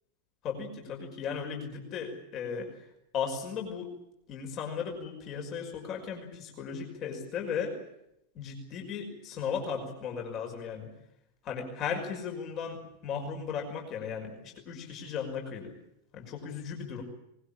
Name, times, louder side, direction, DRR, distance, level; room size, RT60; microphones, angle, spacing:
voice 1, 0.4-2.7 3.1-3.9 4.3-7.8 8.4-10.9 11.4-15.7 16.1-17.0, left 6 dB, 35° left, 3 dB, 5.6 m, -36 dB
24.0 x 21.0 x 8.7 m, 0.80 s
figure-of-eight pair, 90°, 0 cm